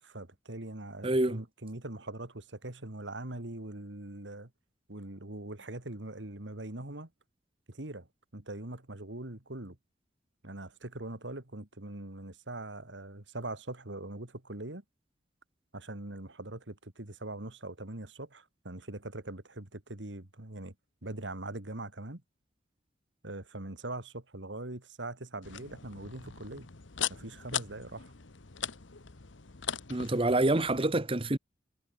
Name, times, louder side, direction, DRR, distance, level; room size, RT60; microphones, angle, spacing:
voice 1, 0.0-4.5 4.9-7.1 7.7-9.8 10.4-14.8 15.7-20.7 21.0-22.2 23.2-26.7 27.1-28.1, right 2 dB, 70° right, 2.6 m, -42 dB
voice 2, 1.0-1.4 29.9-31.4, right 2 dB, 30° right, 1.2 m, -27 dB
Bypass Lopper Branch Cutter, 25.4-30.8, left 9 dB, 85° left, 1.3 m, -40 dB
head